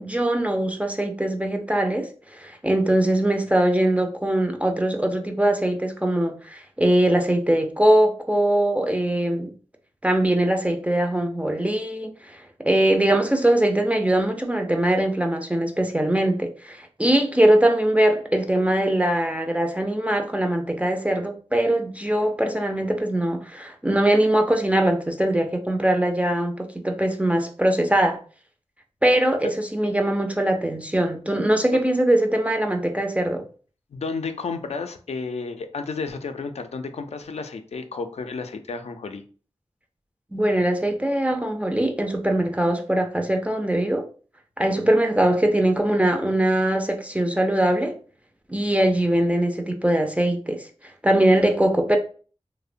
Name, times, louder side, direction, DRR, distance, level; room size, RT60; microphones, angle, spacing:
voice 1, 0.0-9.5 10.0-28.2 29.0-33.4 40.3-44.1 44.6-48.0 48.5-50.7 51.0-52.0, right 1 dB, 10° right, 0.4 m, -22 dB
voice 2, 33.9-39.2, left 4 dB, 70° left, 0.4 m, -32 dB
2.7 x 2.0 x 2.4 m
cardioid pair, 50°, 12 cm